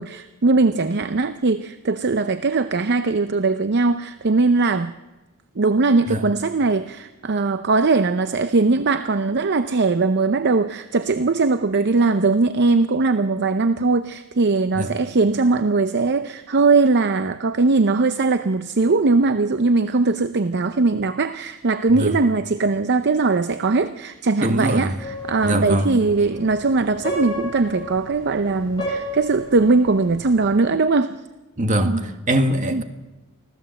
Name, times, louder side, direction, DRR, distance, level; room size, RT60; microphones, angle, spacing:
voice 1, 0.0-4.9 5.6-31.2 31.8-32.0 32.7-32.8, right 3 dB, 50° right, 11 dB, 0.6 m, -20 dB
voice 2, 24.4-24.9 25.4-25.9 31.6-32.8, right 1 dB, 35° right, 6 dB, 1.8 m, -22 dB
sound 1, 25.0-30.5, left 1 dB, 20° left, 6.4 m, -33 dB
25.0 x 16.0 x 7.8 m, 1.1 s
head